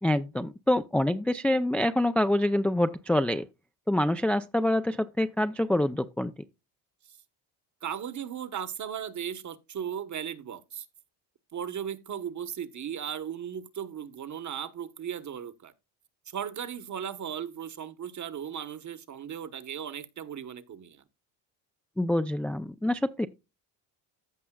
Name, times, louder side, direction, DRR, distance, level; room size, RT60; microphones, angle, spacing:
voice 1, 0.0-3.4 3.9-6.3 22.0-23.3, left 1 dB, 5° left, 0.4 m, -26 dB
voice 2, 7.8-10.9 11.5-15.7 16.3-21.0, right 8 dB, 40° right, 1.2 m, -37 dB
15.0 x 5.5 x 2.3 m
supercardioid pair, 85°, 46 cm